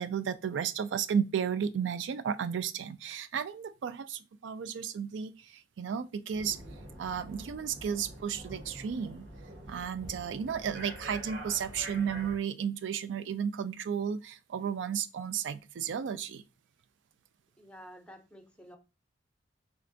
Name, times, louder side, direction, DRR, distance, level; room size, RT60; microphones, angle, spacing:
voice 1, 0.0-6.6 7.0-9.3 9.7-16.4, right 7 dB, 85° right, 0.4 m, -33 dB
sound 1, 6.3-12.3, right 1 dB, 70° right, 1.2 m, -46 dB
voice 2, 17.6-18.8, equal, 5° left, 0.6 m, -51 dB
3.3 x 2.5 x 3.8 m
head